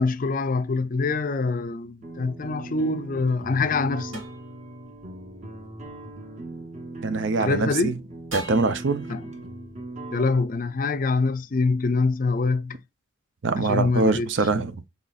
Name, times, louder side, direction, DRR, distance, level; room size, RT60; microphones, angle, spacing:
voice 1, 0.0-4.2 7.4-8.0 9.1-9.3 10.1-12.8 13.6-14.6, left 3 dB, 40° left, 0.4 m, -25 dB
sound 1, 2.0-10.4, right 2 dB, 35° right, 1.0 m, -39 dB
sound 2, 2.0-7.3 8.3-11.7, right 2 dB, 85° right, 2.9 m, -44 dB
voice 2, 7.0-7.9 8.3-9.0 13.4-14.8, right 3 dB, 65° right, 0.5 m, -23 dB
4.1 x 4.0 x 2.4 m
head